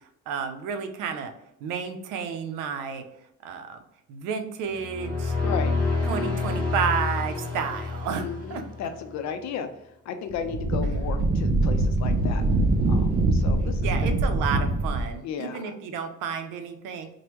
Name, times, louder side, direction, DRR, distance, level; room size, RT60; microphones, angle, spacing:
voice 1, 0.3-1.3 1.6-3.0 3.4-3.8 4.1-5.3 6.1-8.6 13.8-17.1, right 6 dB, 90° right, 6 dB, 0.5 m, -31 dB
sound 1, 4.7-9.1, left 3 dB, ahead, 1.2 m, -28 dB
voice 2, 8.2-9.7 10.1-12.4 12.9-14.2 15.2-15.6, left 6 dB, 65° left, 8 dB, 0.5 m, -34 dB
Wind, 10.3-15.1, right 2 dB, 30° right, 0.4 m, -23 dB
3.3 x 2.1 x 3.0 m, 0.77 s
cardioid pair, 100°, 30 cm